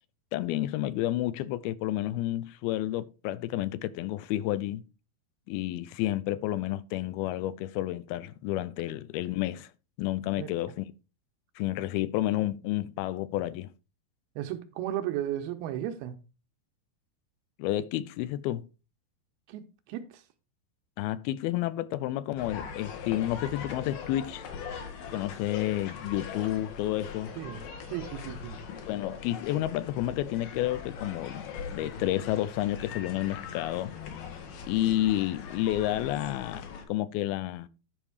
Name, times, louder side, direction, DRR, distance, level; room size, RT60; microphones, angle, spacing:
voice 1, 0.3-4.8 5.5-9.7 10.0-10.9 11.6-13.7 17.6-18.6 21.0-24.4 25.1-27.3 28.9-33.9 34.7-37.7, left 14 dB, 80° left, 2.4 m, -30 dB
voice 2, 14.4-16.2 19.5-20.2 27.4-28.6, right 12 dB, 85° right, 2.9 m, -35 dB
sound 1, 22.4-36.8, left 6 dB, 65° left, 2.9 m, -41 dB
11.0 x 5.2 x 4.9 m
omnidirectional pair, 4.5 m